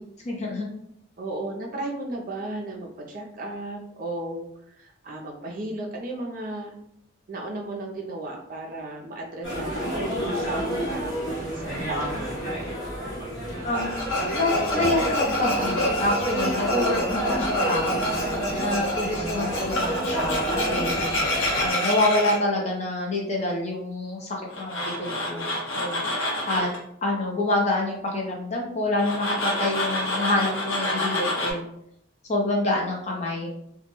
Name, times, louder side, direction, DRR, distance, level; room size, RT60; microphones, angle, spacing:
voice 1, 0.2-0.7 13.6-13.9 14.3-18.2 18.6-21.0 21.6-25.5 25.8-26.7 27.0-31.6 32.3-33.5, left 2 dB, 35° left, -1 dB, 0.5 m, -27 dB
voice 2, 1.2-6.9 7.3-12.3, right 2 dB, 45° right, 0 dB, 0.4 m, -35 dB
sound 1, 9.4-21.7, right 1 dB, 65° left, 0.9 m, -29 dB
Tools, 13.7-22.4 24.5-26.8 29.0-31.5, left 1 dB, 85° left, 0.8 m, -28 dB
2.2 x 2.0 x 2.9 m, 0.74 s
head